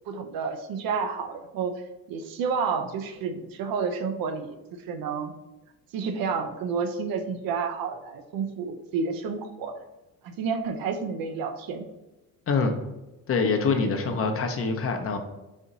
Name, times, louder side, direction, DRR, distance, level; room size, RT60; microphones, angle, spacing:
voice 1, 0.1-5.3 5.9-9.8 10.2-11.9, right 5 dB, 65° right, 8 dB, 0.7 m, -30 dB
voice 2, 13.3-15.2, left 4 dB, 35° left, 5 dB, 0.7 m, -25 dB
4.2 x 2.9 x 3.8 m, 1.0 s
cardioid pair, 105°, 37 cm